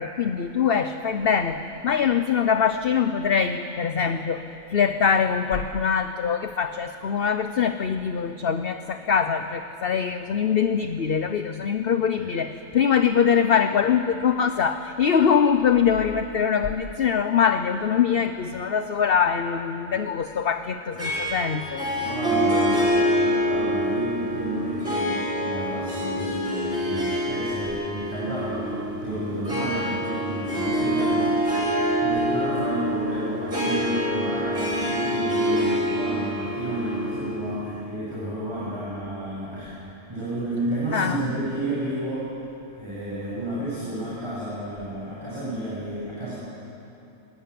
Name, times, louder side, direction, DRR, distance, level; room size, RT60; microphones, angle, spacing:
voice 1, 0.0-4.4 4.7-21.9 40.9-41.3, left 7 dB, 50° left, 9 dB, 0.9 m, -23 dB
Harp, 21.0-37.7, equal, 45° right, 5.9 m, -26 dB
voice 2, 22.0-31.8 32.0-39.8 40.1-42.3 42.7-46.3, right 1 dB, 20° right, -8 dB, 6.9 m, -31 dB
25.0 x 20.0 x 9.6 m, 2.8 s
omnidirectional pair, 1.4 m